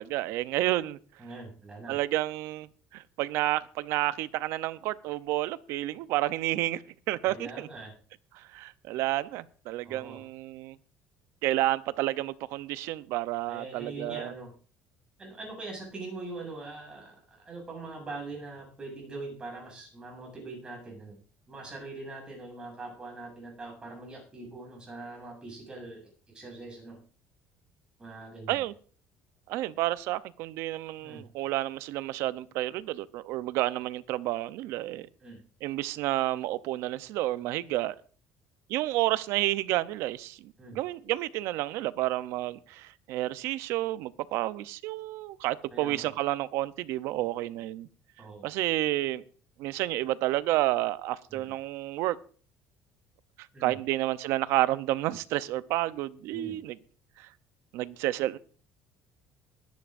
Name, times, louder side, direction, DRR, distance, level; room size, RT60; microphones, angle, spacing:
voice 1, 0.0-1.0 1.9-6.8 7.1-7.7 8.3-10.8 11.4-14.3 28.5-28.7 29.5-35.1 35.6-38.0 38.7-47.9 48.4-49.2 49.6-52.2 53.6-56.8 57.2-57.3 57.7-58.4, right 16 dB, 75° right, 0.6 m, -30 dB
voice 2, 1.2-2.0 7.3-7.9 9.8-10.2 13.5-14.5 15.2-21.2 21.5-26.0 26.3-27.0 28.0-28.6 31.0-31.2 35.2-35.4 40.6-40.8 45.7-46.1 48.2-48.5 51.3-51.4 53.5-53.8 56.3-56.6, right 3 dB, 20° right, 7.6 m, -42 dB
22.5 x 10.5 x 2.6 m
cardioid pair, 135°, 5 cm